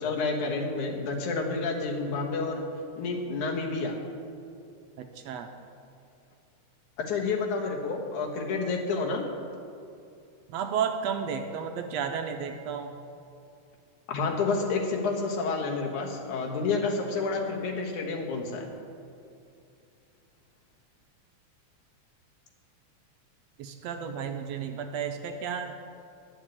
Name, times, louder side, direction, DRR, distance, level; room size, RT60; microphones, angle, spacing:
voice 1, 0.0-2.6 3.0-3.9 7.0-9.3 14.1-18.7, left 4 dB, 85° left, 1 dB, 2.9 m, -29 dB
voice 2, 5.0-5.5 10.5-12.9 23.6-25.8, right 7 dB, 75° right, 6 dB, 1.6 m, -32 dB
11.0 x 7.4 x 8.5 m, 2.6 s
omnidirectional pair, 3.3 m